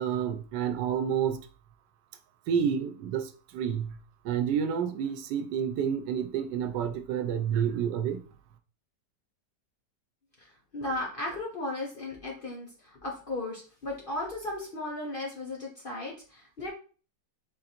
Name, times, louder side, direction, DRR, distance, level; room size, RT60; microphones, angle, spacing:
voice 1, 0.0-1.4 2.5-3.9 4.2-8.2, right 8 dB, 90° right, 1.2 m, -29 dB
voice 2, 10.4-16.7, left 2 dB, 50° left, 0.6 m, -36 dB
4.0 x 2.5 x 4.2 m
omnidirectional pair, 1.9 m